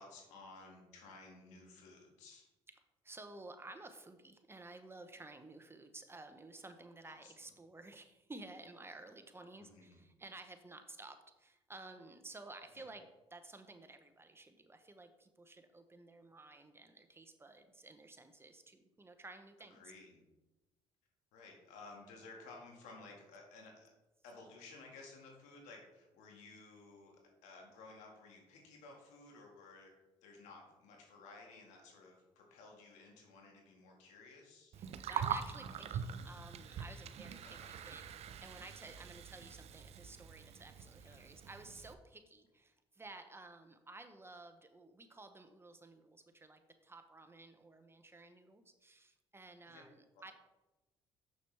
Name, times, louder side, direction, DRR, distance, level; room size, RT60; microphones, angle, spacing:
voice 1, 0.0-2.5 7.0-7.3 9.6-10.0 12.8-12.9 19.7-20.2 21.3-23.9 24.2-29.9 30.2-34.8 37.4-37.7 41.0-41.3 49.7-49.8 50.1-50.3, left 3 dB, 85° left, 0 dB, 1.8 m, -56 dB
voice 2, 3.0-19.8 34.8-50.3, right 2 dB, 20° right, 8 dB, 0.8 m, -54 dB
Gurgling, 34.7-41.9, right 7 dB, 60° right, 0.5 m, -43 dB
6.8 x 6.5 x 3.4 m, 1.0 s
supercardioid pair, 75°, 12 cm